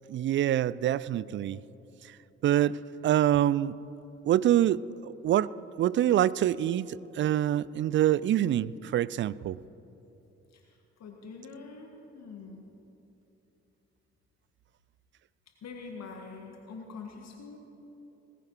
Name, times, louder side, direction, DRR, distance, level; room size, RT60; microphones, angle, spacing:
voice 1, 0.1-1.6 2.4-3.7 4.3-5.5 5.8-9.6, right 12 dB, 35° right, 20 dB, 0.4 m, -26 dB
voice 2, 10.5-12.7 15.6-17.6, left 4 dB, 50° left, 2 dB, 1.6 m, -45 dB
20.0 x 9.0 x 4.6 m, 3.0 s
hypercardioid pair, 45°, 34 cm